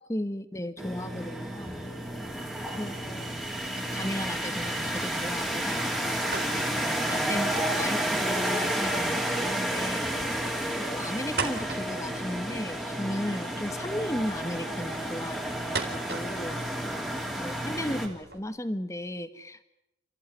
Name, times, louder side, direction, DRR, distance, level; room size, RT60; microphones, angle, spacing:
voice 1, 0.1-1.8 2.7-3.3 3.7-6.2 6.5-10.4 10.8-16.6 17.4-19.6, left 1 dB, 15° left, 9 dB, 1.3 m, -35 dB
sound 1, 0.8-18.1, right 1 dB, ahead, 3.2 m, -31 dB
sound 2, 4.2-18.4, right 4 dB, 60° right, 4.1 m, -42 dB
29.5 x 16.0 x 9.8 m, 0.87 s
head